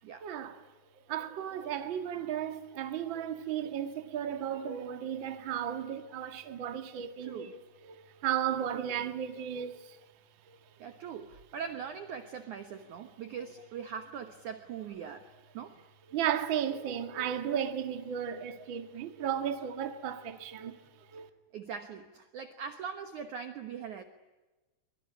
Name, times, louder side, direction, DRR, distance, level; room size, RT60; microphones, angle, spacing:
voice 1, 0.2-0.6 1.1-10.0 10.5-10.6 16.1-20.8 21.1-21.3, right 9 dB, 40° right, 1.8 m, -34 dB
voice 2, 7.2-7.5 8.7-9.0 10.8-15.8 21.5-24.0, right 7 dB, 65° right, 2.1 m, -41 dB
24.5 x 24.0 x 9.9 m
omnidirectional pair, 4.9 m